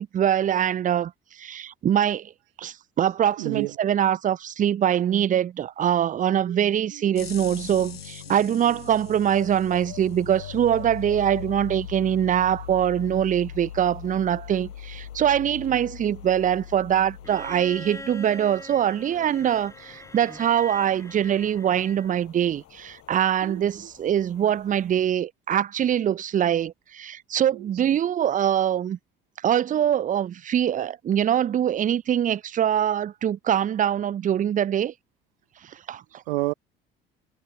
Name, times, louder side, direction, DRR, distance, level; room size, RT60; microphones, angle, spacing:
voice 1, 0.0-2.3 2.6-29.0 29.4-34.9 35.6-36.2, right 10 dB, 25° right, 0.5 m, -23 dB
voice 2, 3.4-3.8 6.5-7.2 8.3-8.8 15.5-15.6 23.4-23.9 27.5-27.8 36.3-36.5, right 21 dB, 70° right, 0.7 m, -33 dB
sound 1, 7.2-20.1, left 9 dB, 80° left, 1.1 m, -40 dB
sound 2, 9.1-25.1, left 12 dB, 50° left, 5.5 m, -51 dB
Bowed string instrument, 17.2-22.3 23.7-23.8, left 2 dB, 10° left, 4.3 m, -42 dB
figure-of-eight pair, 55°, 29 cm